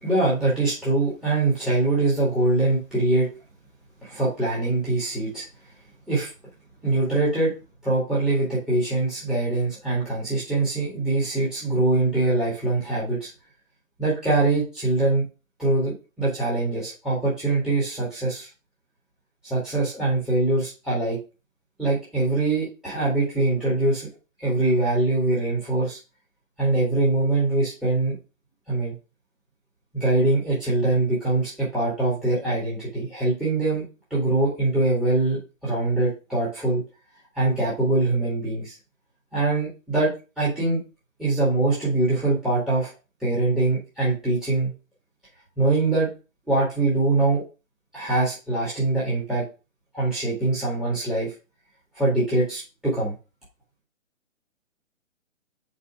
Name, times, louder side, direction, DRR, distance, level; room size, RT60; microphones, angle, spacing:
voice 1, 0.0-3.3 4.0-5.4 6.1-6.3 6.8-7.5 7.8-13.3 14.0-15.3 15.6-18.5 19.4-21.2 21.8-24.1 24.4-26.0 26.6-28.2 28.7-28.9 29.9-33.8 34.1-36.8 37.4-38.7 39.3-40.1 40.4-40.8 41.2-42.9 43.2-44.7 45.6-46.1 46.5-47.4 47.9-49.4 49.9-51.3 52.0-53.1, right 2 dB, ahead, -9 dB, 2.1 m, -23 dB
5.5 x 4.7 x 4.8 m, 0.31 s
hypercardioid pair, 150°, 40 cm